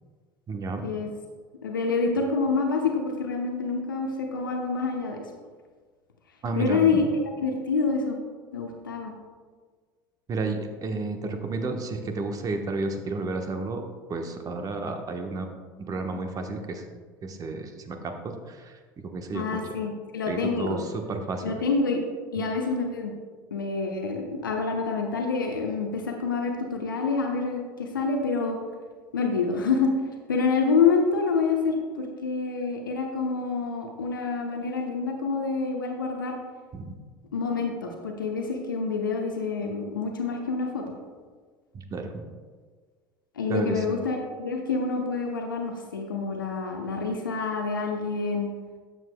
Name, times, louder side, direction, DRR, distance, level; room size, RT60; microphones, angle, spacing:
voice 1, 0.5-0.9 6.4-7.0 10.3-13.8 14.1-15.5 15.9-16.8 17.2-19.6 20.3-21.5 36.7-36.9 41.7-42.3 43.5-43.9, right 3 dB, 35° right, 5 dB, 1.1 m, -31 dB
voice 2, 1.6-5.2 6.6-7.0 7.4-8.2 8.5-9.1 19.3-20.7 21.4-22.0 22.3-23.1 23.5-28.6 29.1-29.9 30.3-36.4 37.3-40.8 43.4-48.5, left 4 dB, 80° left, 2 dB, 0.9 m, -27 dB
12.5 x 7.7 x 2.2 m, 1.5 s
figure-of-eight pair, 70°, 11 cm